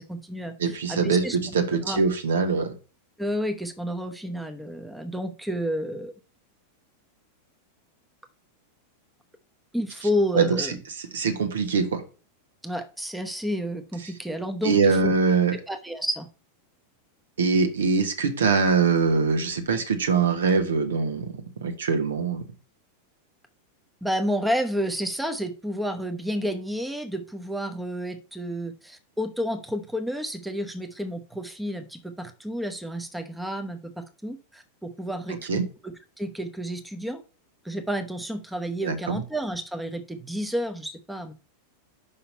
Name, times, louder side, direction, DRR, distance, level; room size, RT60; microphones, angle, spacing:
voice 1, 0.0-1.4 1.8-2.0 3.2-6.1 9.7-10.8 12.6-15.1 15.7-16.3 24.0-37.2 37.6-41.3, equal, 5° right, 6 dB, 1.0 m, -30 dB
voice 2, 0.6-2.7 10.3-10.7 10.9-12.0 14.6-15.6 17.4-22.4 35.3-35.7 38.8-39.2, right 5 dB, 65° right, 8 dB, 1.4 m, -23 dB
5.6 x 5.6 x 5.4 m, 0.34 s
figure-of-eight pair, 90°, 0 cm